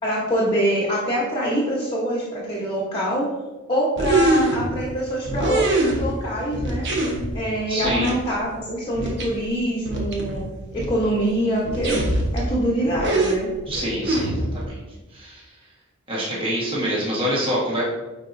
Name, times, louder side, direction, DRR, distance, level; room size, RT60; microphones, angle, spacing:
voice 1, 0.0-3.3 3.7-6.9 7.3-10.4 10.7-12.0 12.3-13.5, equal, 25° left, -4 dB, 1.0 m, -24 dB
sound 1, 4.0-4.9 5.2-6.3 6.5-7.4 7.8-8.1 8.5-8.6 8.9-9.2 9.6-9.7 9.9-11.0 11.3-11.4 11.7-12.5 12.9-14.7, right 2 dB, 50° right, 1.1 m, -23 dB
voice 2, 7.7-8.1 13.7-14.8 15.1-15.4 16.1-17.8, equal, 25° right, -6 dB, 1.4 m, -26 dB
9.5 x 4.1 x 2.6 m, 1.1 s
head